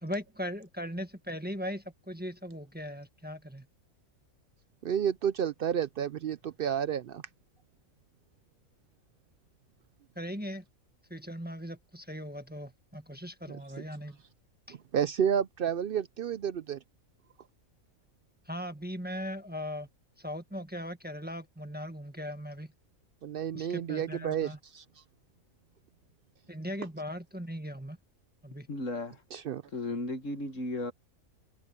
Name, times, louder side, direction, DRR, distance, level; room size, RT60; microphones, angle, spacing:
voice 1, 0.0-3.7 10.1-10.6 11.1-14.2 14.7-14.8 18.4-19.9 20.2-22.7 23.5-24.6 26.5-28.0 28.4-28.7, equal, 5° right, 1.3 m, -39 dB
voice 2, 4.8-7.2 14.9-16.8 23.2-24.8 29.3-29.6, right 8 dB, 70° right, 0.5 m, -30 dB
voice 3, 28.7-29.2 29.7-30.9, left 2 dB, 60° left, 1.9 m, -35 dB
omnidirectional pair, 1.5 m